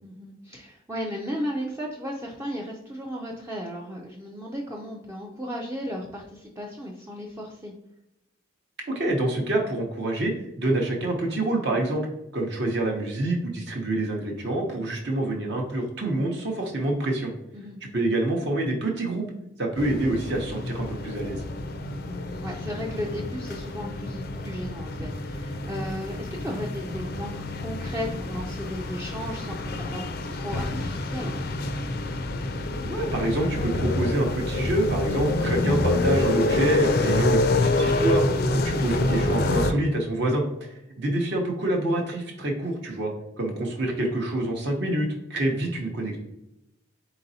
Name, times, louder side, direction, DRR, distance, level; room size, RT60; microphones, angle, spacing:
voice 1, 0.0-7.7 17.5-17.8 22.4-31.3, equal, 15° right, -2 dB, 0.4 m, -35 dB
voice 2, 8.9-12.1 12.3-17.3 17.8-19.2 19.6-21.4 32.8-38.2 38.5-43.1 43.4-46.2, right 1 dB, 60° right, 0 dB, 0.7 m, -26 dB
sound 1, 19.8-39.7, left 2 dB, 50° left, 0.4 m, -27 dB
4.0 x 4.0 x 2.7 m, 0.86 s
head